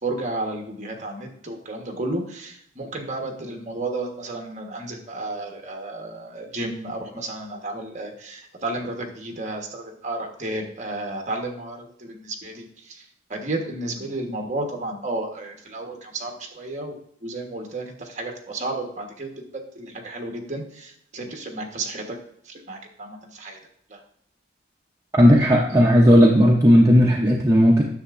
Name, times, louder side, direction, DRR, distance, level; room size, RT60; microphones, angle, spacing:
voice 1, 0.0-16.9 17.2-22.2 22.4-23.6 23.9-24.0, right 2 dB, 35° right, 3 dB, 1.1 m, -32 dB
voice 2, 25.1-27.8, equal, 15° right, -2 dB, 0.6 m, -15 dB
9.8 x 6.8 x 2.5 m, 0.71 s
head